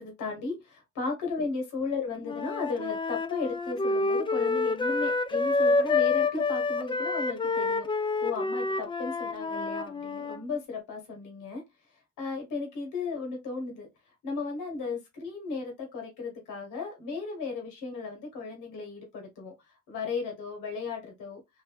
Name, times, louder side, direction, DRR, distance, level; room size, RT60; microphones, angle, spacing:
voice 1, 0.0-11.6 12.2-13.9 14.2-21.4, left 4 dB, 90° left, 1.2 m, -35 dB
Wind instrument woodwind instrument, 2.2-10.4, left 3 dB, 15° left, 0.4 m, -28 dB
3.4 x 2.6 x 2.2 m
cardioid pair, 90°, 30 cm